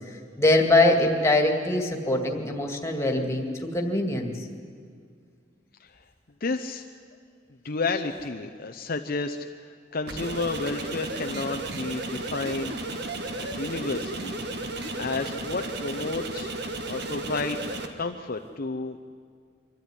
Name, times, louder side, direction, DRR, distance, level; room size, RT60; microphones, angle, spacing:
voice 1, 0.4-4.3, left 2 dB, 15° left, 2 dB, 2.2 m, -23 dB
voice 2, 6.4-6.8 7.6-12.8 13.4-14.4 15.0-16.5 16.9-17.6 18.0-19.0, left 3 dB, 50° left, 5 dB, 0.7 m, -31 dB
sound 1, 10.1-17.9, right 2 dB, 60° right, 1.6 m, -34 dB
24.0 x 13.5 x 9.9 m, 2.1 s
head